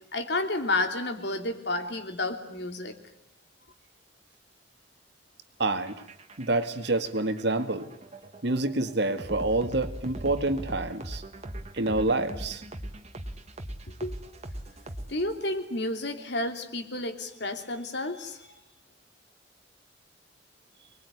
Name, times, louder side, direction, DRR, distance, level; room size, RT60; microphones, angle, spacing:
voice 1, 0.1-2.9 14.0-14.1 15.1-18.4, left 2 dB, 65° left, 6 dB, 3.2 m, -31 dB
voice 2, 5.6-6.0 6.4-7.9 8.4-11.2 11.7-12.6, right 2 dB, 65° right, 9 dB, 2.1 m, -27 dB
sound 1, 5.8-15.5, right 1 dB, 35° right, 1.9 m, -40 dB
25.5 x 21.5 x 9.9 m, 0.77 s
head